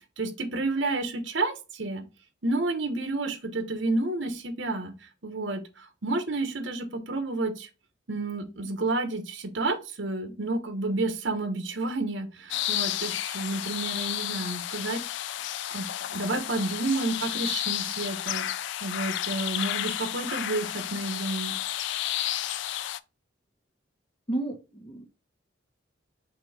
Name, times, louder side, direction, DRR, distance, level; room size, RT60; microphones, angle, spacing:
voice 1, 0.2-2.0 2.4-7.7 8.1-15.0 15.7-18.5 18.8-21.5, right 2 dB, 70° right, 7 dB, 1.0 m, -30 dB
sound 1, 12.5-23.0, left 12 dB, 65° left, 0.3 m, -32 dB
voice 2, 24.3-25.1, right 2 dB, 30° left, 5 dB, 1.0 m, -32 dB
6.0 x 2.6 x 3.3 m, 0.30 s
head